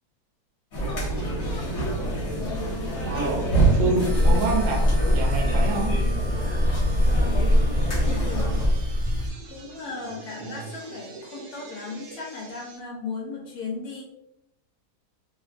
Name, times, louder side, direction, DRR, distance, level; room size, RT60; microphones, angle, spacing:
sound 1, 0.7-8.7, right 2 dB, 50° left, 1.3 m, -27 dB
voice 1, 3.0-4.8 5.1-6.0 10.4-10.6, right 3 dB, 65° right, 1 dB, 0.8 m, -28 dB
sound 2, 4.0-9.3, left 1 dB, 50° right, 0.6 m, -23 dB
sound 3, 5.0-12.8, right 3 dB, 90° right, 1.2 m, -47 dB
voice 2, 7.0-8.6 9.5-14.0, left 4 dB, 85° left, -2 dB, 1.2 m, -36 dB
3.1 x 2.2 x 2.4 m, 0.85 s
omnidirectional pair, 1.7 m